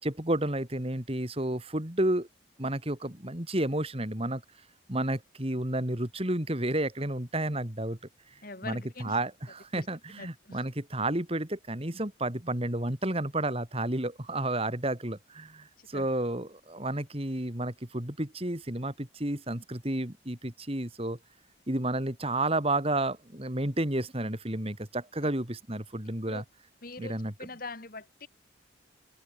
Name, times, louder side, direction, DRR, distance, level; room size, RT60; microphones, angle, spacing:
voice 1, 0.0-2.3 2.6-4.4 4.9-8.0 8.6-21.2 21.7-26.4 27.0-27.3, right 1 dB, 30° right, 2.8 m, -31 dB
voice 2, 8.4-9.2 9.7-9.9 10.2-10.6 15.8-16.1 25.2-25.3 26.3-26.4 26.8-27.1 27.4-28.3, left 3 dB, 45° left, 2.6 m, -43 dB
open air
head